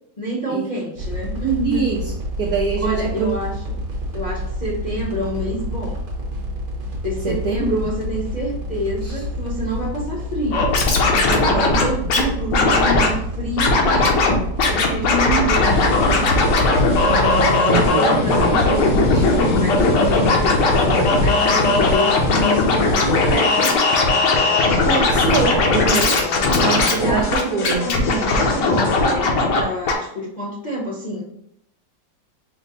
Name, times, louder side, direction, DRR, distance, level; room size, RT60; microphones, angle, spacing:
voice 1, 0.2-1.8 2.8-3.6 4.1-6.0 7.0-10.8 11.1-14.1 14.6-16.3 17.7-20.8 21.2-23.8 26.3-26.6 27.0-31.2, equal, 35° left, -6 dB, 0.7 m, -27 dB
sound 1, 1.0-17.5, equal, 55° right, 1.3 m, -28 dB
voice 2, 1.6-2.0 2.4-3.3 7.2-7.8 9.0-9.1 11.5-11.9 17.0-18.1 18.4-18.5 19.1-19.2 24.9-26.2 26.6-27.9, right 5 dB, 80° right, 1 dB, 0.8 m, -24 dB
Scratching (performance technique), 10.5-12.2 12.5-13.1 13.6-14.3 14.6-29.6 29.9-30.0, left 3 dB, 70° left, 1.4 m, -18 dB
sound 2, 15.6-29.1, left 2 dB, 85° left, 1.4 m, -31 dB
5.1 x 2.1 x 3.9 m, 0.73 s
omnidirectional pair, 2.1 m